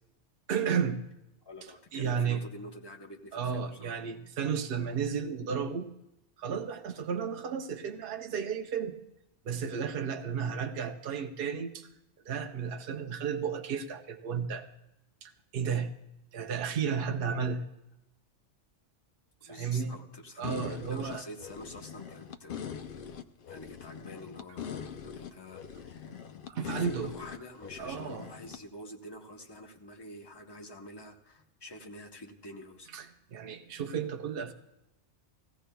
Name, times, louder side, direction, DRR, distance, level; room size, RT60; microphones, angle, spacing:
voice 1, 0.5-1.0 1.9-2.4 3.3-5.9 6.4-8.9 9.4-11.9 12.3-14.7 15.2-15.9 16.3-17.6 19.4-20.0 20.4-21.2 26.5-27.1 27.8-28.3 32.9-33.1 33.3-34.5, right 6 dB, 60° right, 5 dB, 0.8 m, -33 dB
voice 2, 1.4-4.0 19.4-22.8 23.5-26.1 26.5-32.9, left 1 dB, 25° left, 2 dB, 0.8 m, -47 dB
sound 1, 20.4-28.6, left 8 dB, 60° left, 0.6 m, -42 dB
17.0 x 15.5 x 2.2 m, 0.89 s
omnidirectional pair, 1.2 m